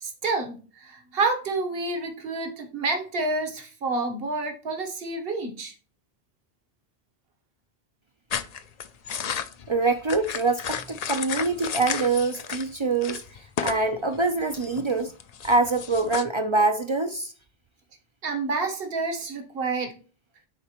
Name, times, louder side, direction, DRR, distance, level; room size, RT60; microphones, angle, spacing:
voice 1, 0.0-5.7 18.2-19.9, right 3 dB, 65° right, 1.3 m, -29 dB
sound 1, 8.3-12.7 13.0-13.9 14.1-16.2, left 7 dB, 50° left, 0.5 m, -33 dB
voice 2, 9.7-13.2 13.6-15.1 15.4-17.3, right 3 dB, 40° right, 0.4 m, -24 dB
9.9 x 4.1 x 3.0 m
omnidirectional pair, 1.1 m